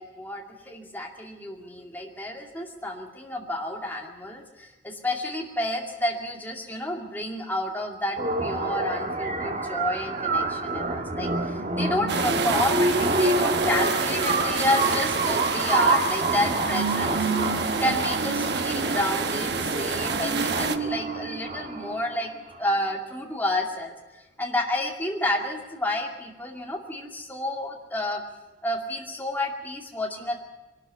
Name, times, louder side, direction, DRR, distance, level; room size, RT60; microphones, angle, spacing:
voice 1, 0.0-17.4 17.8-22.3 22.6-23.9 24.4-28.2 28.6-30.4, left 1 dB, 10° left, 0 dB, 2.4 m, -30 dB
sound 1, 8.2-22.2, right 2 dB, 40° right, 1.4 m, -27 dB
sound 2, 12.1-20.8, right 5 dB, 60° right, 1.1 m, -29 dB
22.5 x 13.0 x 9.4 m, 1.1 s
head